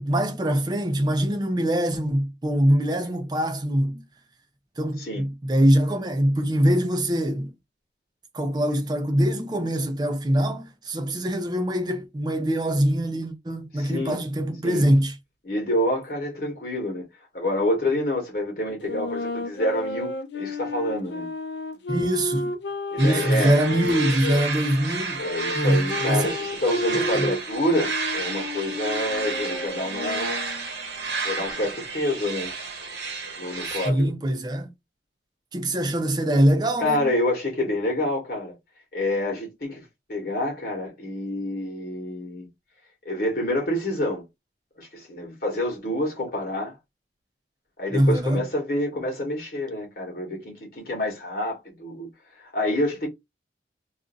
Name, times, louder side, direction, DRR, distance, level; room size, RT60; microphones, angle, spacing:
voice 1, 0.0-4.0 4.8-7.5 8.3-15.2 21.9-22.5 23.0-25.3 25.5-26.3 26.9-27.3 33.7-34.7 35.5-37.1 47.9-48.4, equal, 25° right, 0.5 m, -23 dB
voice 2, 13.7-14.2 14.6-14.9 15.4-17.0 17.3-21.3 22.9-23.6 25.2-30.4 31.2-32.5 33.4-34.1 36.8-38.5 38.9-42.5 43.0-44.2 44.8-46.8 47.8-52.1 52.4-53.1, left 1 dB, 55° left, 1.1 m, -27 dB
sound 1, 18.8-24.5 25.2-30.7, left 2 dB, 85° left, 0.5 m, -32 dB
sound 2, 23.0-33.9, right 4 dB, 75° right, 0.9 m, -31 dB
2.5 x 2.5 x 3.8 m
head